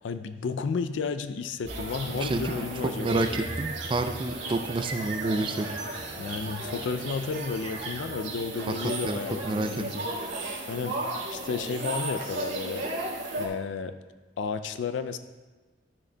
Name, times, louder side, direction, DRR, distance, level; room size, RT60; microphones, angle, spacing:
voice 1, 0.0-3.4 6.2-10.0 10.3-12.9 13.3-14.0 14.4-15.2, left 5 dB, 80° left, 10 dB, 0.4 m, -32 dB
sound 1, 1.6-8.5, equal, 60° right, 1.6 m, -45 dB
sound 2, 1.7-13.5, right 2 dB, 80° right, 1.6 m, -35 dB
voice 2, 2.8-5.8 6.4-6.7 8.7-8.8 9.0-9.2 9.4-9.8, right 2 dB, 25° right, 7 dB, 0.3 m, -29 dB
12.0 x 6.4 x 2.2 m, 1.3 s
head